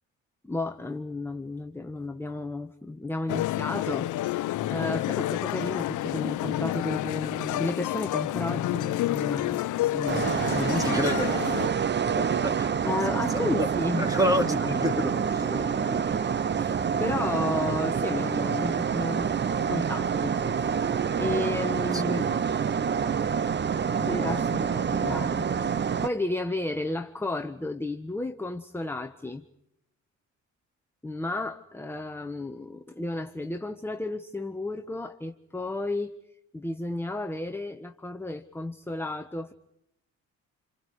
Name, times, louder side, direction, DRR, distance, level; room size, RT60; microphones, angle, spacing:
voice 1, 0.4-10.9 12.8-14.1 14.6-14.7 15.4-16.3 16.6-19.3 19.7-20.7 21.2-22.2 24.0-25.5 26.0-29.4 31.0-36.1 36.5-39.5, left 2 dB, 5° left, 5 dB, 1.3 m, -33 dB
sound 1, 3.3-11.7, left 14 dB, 80° left, 0.8 m, -29 dB
sound 2, 10.1-26.1, right 7 dB, 35° right, 0.8 m, -27 dB
voice 2, 10.8-11.4 12.2-12.7 13.3-13.7 14.0-15.5 15.8-16.2 21.9-22.3, equal, 10° right, 7 dB, 2.7 m, -29 dB
28.5 x 26.0 x 4.8 m, 0.82 s
cardioid pair, 90°, 30 cm